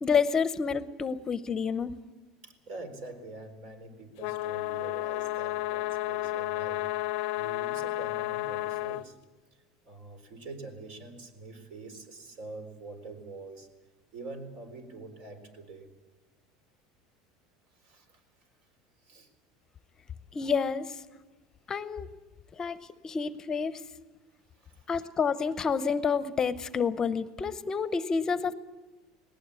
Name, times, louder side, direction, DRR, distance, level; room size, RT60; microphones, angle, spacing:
voice 1, 0.0-2.0 20.3-21.0 21.7-22.1 22.6-22.8 23.0-23.8 24.9-28.5, left 6 dB, 25° left, 14 dB, 0.8 m, -29 dB
voice 2, 2.4-6.9 7.3-9.2 9.8-13.7 14.1-15.9 17.7-18.2 19.0-19.3 24.5-25.0, right 3 dB, 60° right, 8 dB, 4.1 m, -45 dB
sound 1, 4.2-9.0, left 17 dB, 70° left, 0.6 m, -32 dB
19.5 x 18.0 x 8.4 m, 1.2 s
supercardioid pair, 120°, 2 cm